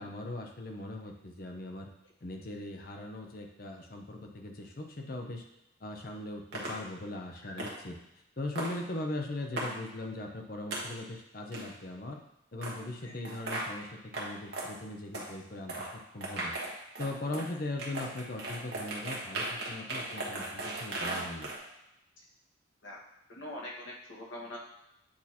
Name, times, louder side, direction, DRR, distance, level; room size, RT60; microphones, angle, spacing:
voice 1, 0.0-1.9 2.2-5.4 5.8-8.0 8.4-12.2 12.5-21.5, left 2 dB, 50° left, 3 dB, 0.7 m, -40 dB
sound 1, 6.5-6.8 7.6-7.7 8.6-8.8 9.6-9.7 10.7-10.8 11.5-11.7 12.6-12.7 13.2-13.7 14.1-14.3 14.5-14.7 15.1-15.3 15.7-15.9 16.2-17.5 17.8-21.6, right 2 dB, 55° right, 1.3 m, -36 dB
voice 2, 23.4-24.6, left 1 dB, 75° left, -4 dB, 1.6 m, -43 dB
8.7 x 2.9 x 4.2 m, 0.87 s
head